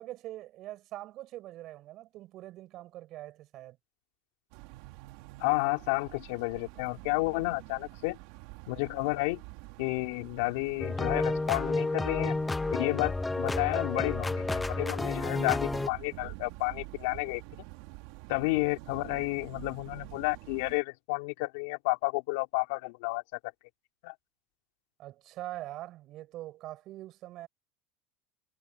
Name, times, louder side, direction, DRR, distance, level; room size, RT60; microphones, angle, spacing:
voice 1, 0.0-3.8 25.0-27.5, right 15 dB, 55° right, 7.1 m, -43 dB
sound 1, 4.5-20.8, right 23 dB, 70° right, 3.2 m, -47 dB
voice 2, 5.4-8.2 8.7-9.4 9.8-12.4 12.7-17.4 18.3-23.2 24.0-24.1, left 25 dB, 75° left, 3.4 m, -31 dB
sound 2, 10.8-15.9, left 2 dB, 10° left, 0.6 m, -31 dB
supercardioid pair, 105°, 0 cm